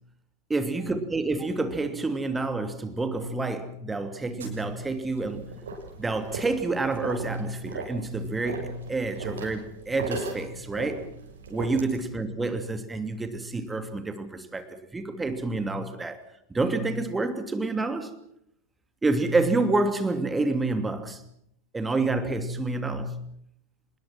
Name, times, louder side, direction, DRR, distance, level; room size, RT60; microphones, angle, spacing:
voice 1, 0.5-5.5 6.0-11.1 11.5-16.2 16.5-18.1 19.0-21.2 21.7-23.1, right 3 dB, 10° right, 2.7 m, -28 dB
sound 1, 4.4-12.1, right 3 dB, 65° right, 6.5 m, -38 dB
26.5 x 21.0 x 6.1 m
figure-of-eight pair, 90°, 0 cm